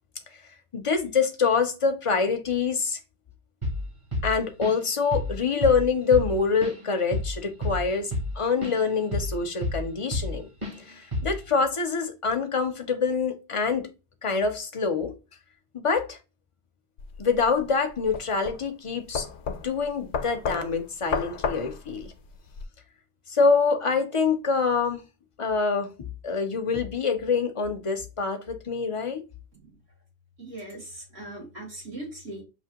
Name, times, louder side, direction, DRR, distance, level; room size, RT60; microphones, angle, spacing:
voice 1, 0.7-3.0 4.2-10.5 10.9-13.9 14.2-15.1 15.7-16.2 17.2-22.1 23.3-25.0 25.4-25.9 26.2-29.2, left 5 dB, 35° left, 0.6 m, -25 dB
Drum kit / Drum, 3.6-3.9 4.1-4.9 5.1-5.4 5.6-8.8 9.1-10.4 10.6-10.8 11.1-11.5, left 2 dB, 30° right, 1.1 m, -30 dB
sound 1, 17.0-22.7, left 5 dB, 85° left, 0.9 m, -33 dB
voice 2, 30.4-32.4, right 1 dB, 70° right, 2.8 m, -39 dB
5.9 x 2.8 x 2.9 m
omnidirectional pair, 1.1 m